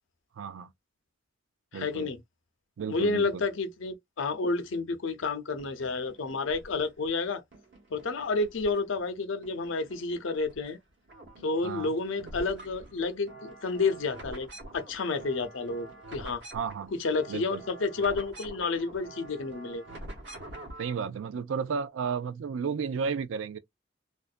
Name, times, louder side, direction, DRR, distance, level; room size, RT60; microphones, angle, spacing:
voice 1, 0.4-0.7 1.7-2.1 2.8-3.4 11.6-11.9 16.5-16.9 17.3-17.6 20.8-23.6, right 6 dB, 85° right, 0.4 m, -33 dB
voice 2, 1.7-2.2 2.9-7.4 7.9-10.8 11.4-16.4 16.9-19.8, left 3 dB, 80° left, 0.6 m, -30 dB
sound 1, 5.6-7.1 7.5-9.1 9.4-10.7 11.0-20.9, right 1 dB, 60° right, 0.9 m, -47 dB
2.5 x 2.1 x 2.4 m
head